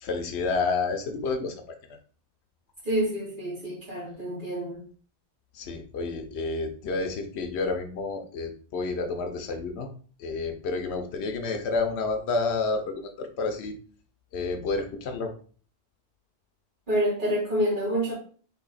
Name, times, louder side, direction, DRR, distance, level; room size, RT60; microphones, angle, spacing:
voice 1, 0.0-1.6 1.9-2.0 5.5-9.9 10.2-13.8 14.3-15.3, left 3 dB, 90° left, 6 dB, 1.0 m, -30 dB
voice 2, 2.8-4.8 16.9-18.1, equal, 50° right, -8 dB, 1.5 m, -27 dB
3.5 x 2.8 x 4.0 m, 0.43 s
omnidirectional pair, 1.1 m